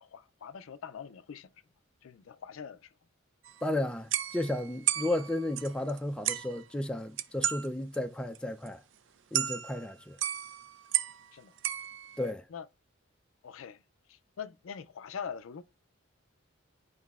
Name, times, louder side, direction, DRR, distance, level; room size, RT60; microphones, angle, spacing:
voice 1, 0.0-1.5 2.0-2.9 11.3-11.5 12.5-12.7 13.4-13.8 14.1-15.6, left 7 dB, 70° left, 0.4 m, -43 dB
sound 1, 3.4-3.7 4.1-6.0 6.2-6.6 7.2-7.7 7.9-8.0 8.3-8.4 8.7-8.8 9.3-9.9 10.2-11.3 11.6-12.3, right 11 dB, 60° right, 0.4 m, -33 dB
voice 2, 3.6-8.8 9.3-10.2 12.2-12.5, left 1 dB, 5° left, 0.4 m, -33 dB
11.0 x 4.8 x 2.4 m
head